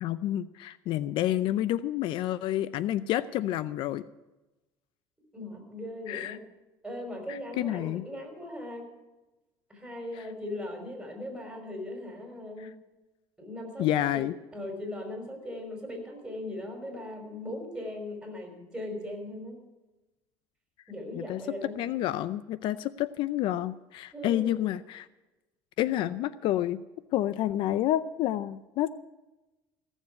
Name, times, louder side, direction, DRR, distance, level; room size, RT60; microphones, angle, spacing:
voice 1, 0.0-4.0 6.1-6.4 7.3-8.0 12.6-12.7 13.8-14.3 21.1-21.4 21.8-25.1 25.8-26.8 27.1-28.9, left 13 dB, 65° left, 16 dB, 0.5 m, -29 dB
voice 2, 5.3-6.4 6.8-8.9 9.7-12.7 13.4-13.9 14.1-14.2 14.5-19.6 20.9-21.8 24.1-24.5, left 1 dB, 5° right, 2 dB, 5.3 m, -39 dB
16.0 x 7.2 x 9.4 m, 1.1 s
supercardioid pair, 105°, 9 cm